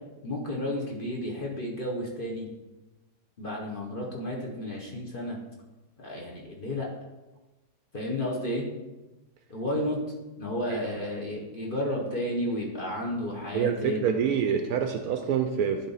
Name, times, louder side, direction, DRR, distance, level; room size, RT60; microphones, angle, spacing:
voice 1, 0.2-2.5 3.4-5.4 6.0-6.9 7.9-8.7 9.5-10.0 10.4-14.1, left 1 dB, 35° left, -2 dB, 1.1 m, -32 dB
voice 2, 13.5-15.9, right 7 dB, 70° right, 6 dB, 1.0 m, -26 dB
10.5 x 3.7 x 4.0 m, 1.1 s
omnidirectional pair, 1.8 m